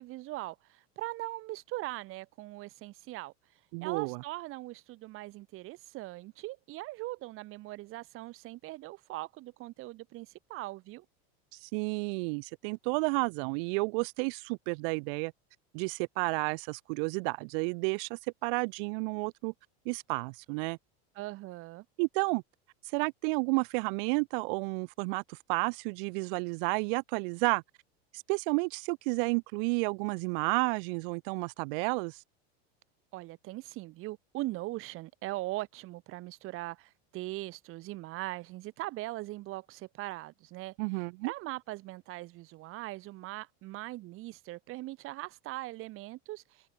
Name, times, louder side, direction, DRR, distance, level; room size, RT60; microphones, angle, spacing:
voice 1, 0.0-3.3 3.8-11.1 21.2-21.9 33.1-40.8 41.2-46.7, right 19 dB, 45° right, 1.9 m, -40 dB
voice 2, 3.7-4.2 11.6-15.3 15.7-19.5 19.9-20.8 22.0-22.4 22.9-27.6 28.1-32.2 40.8-41.3, right 34 dB, 60° right, 0.7 m, -31 dB
supercardioid pair, 145°, 31 cm